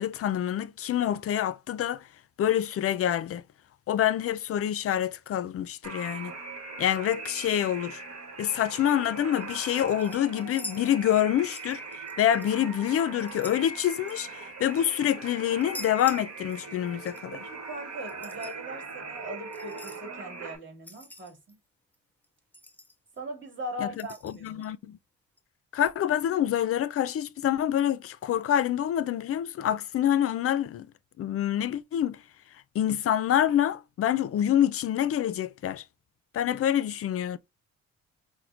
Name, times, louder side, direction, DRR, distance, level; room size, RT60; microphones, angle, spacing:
voice 1, 0.0-2.0 2.4-3.4 3.9-6.3 6.8-8.0 8.4-11.8 12.2-17.4 23.8-25.0 25.7-30.9 31.2-32.2 32.7-35.8 36.3-37.4, left 10 dB, 50° left, 0.4 m, -26 dB
sound 1, 5.8-20.6, right 4 dB, 60° right, 1.3 m, -41 dB
sound 2, 9.3-9.6 10.0-11.3 11.5-12.5 12.8-14.9 15.6-16.8 17.1-17.2 18.0-18.6 19.5-20.0 20.8-21.5 21.9-22.0 22.2-22.3 22.5-23.2 24.0-24.7 25.4-25.5, left 1 dB, 5° left, 0.7 m, -45 dB
voice 2, 17.3-21.6 23.2-24.6, equal, 40° right, 2.0 m, -40 dB
5.8 x 2.2 x 2.4 m
cardioid pair, 90°, 30 cm